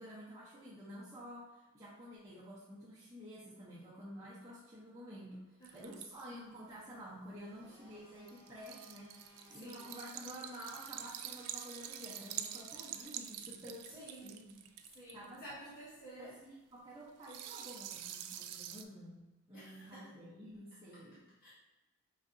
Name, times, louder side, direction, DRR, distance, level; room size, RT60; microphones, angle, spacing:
voice 1, 0.0-14.6 15.1-15.6 16.2-21.2, equal, 15° right, -10 dB, 0.7 m, -50 dB
voice 2, 5.6-6.0 9.5-9.9 13.9-14.3 14.9-16.4 19.5-20.0 21.4-21.5, right 1 dB, 45° left, -9 dB, 0.9 m, -52 dB
sound 1, 5.6-6.2 8.3-15.6 17.2-18.8, right 10 dB, 90° right, 0.3 m, -46 dB
Domestic sounds home sounds, 7.4-13.0, equal, 10° left, 1.5 m, -62 dB
4.9 x 3.2 x 2.6 m, 1.1 s
head